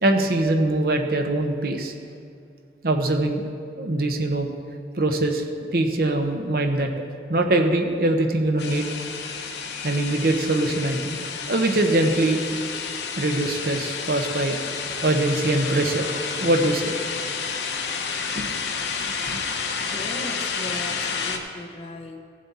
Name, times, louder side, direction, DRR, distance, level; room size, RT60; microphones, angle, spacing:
voice 1, 0.0-1.9 2.8-3.5 3.8-4.5 5.0-6.9 7.3-8.9 9.8-11.2 11.5-12.4 13.2-14.6 15.0-16.9 18.3-18.5 19.0-19.4, right 2 dB, 55° right, 4 dB, 0.9 m, -23 dB
sound 1, 8.6-21.4, left 5 dB, 80° left, 1.0 m, -30 dB
voice 2, 19.8-22.2, left 1 dB, 35° left, 3 dB, 0.9 m, -37 dB
16.5 x 7.5 x 4.2 m, 2.4 s
head